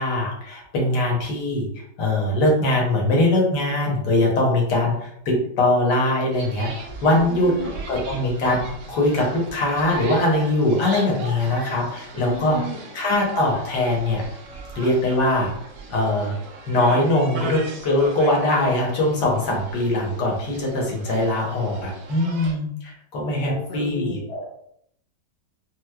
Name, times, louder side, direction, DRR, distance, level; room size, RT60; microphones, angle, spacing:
voice 1, 0.0-1.7 2.0-6.7 7.0-7.5 7.9-12.6 12.9-14.2 14.5-15.5 15.9-16.3 16.7-24.2, left 1 dB, 70° left, -2 dB, 1.5 m, -22 dB
sound 1, 6.3-22.5, right 2 dB, 70° right, 1.0 m, -38 dB
voice 2, 7.1-7.7 12.1-12.8 23.4-24.5, right 1 dB, 50° left, -4 dB, 0.8 m, -33 dB
4.4 x 2.0 x 2.2 m, 0.71 s
omnidirectional pair, 1.9 m